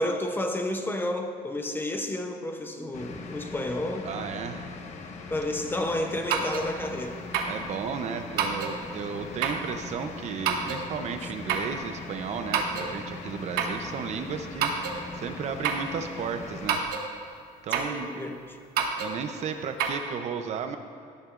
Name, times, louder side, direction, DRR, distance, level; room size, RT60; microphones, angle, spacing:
voice 1, 0.0-4.1 5.3-7.3 17.8-18.6, left 1 dB, 15° left, 0.7 m, -31 dB
sound 1, 2.9-16.8, left 3 dB, 45° left, 1.1 m, -40 dB
voice 2, 4.0-4.7 7.5-16.8 17.6-18.1 19.0-20.8, right 6 dB, 45° right, 0.7 m, -34 dB
sound 2, 6.3-6.7 7.3-7.6 8.4-8.8 9.4-9.7 10.4-10.8 11.5-11.7 12.5-12.9 13.6-13.8 14.6-15.0 15.6-15.9 16.7-17.1 17.7-18.0 18.8-19.1 19.8-19.9, right 6 dB, 75° right, 1.1 m, -27 dB
17.5 x 9.7 x 2.5 m
cardioid pair, 140°, 16 cm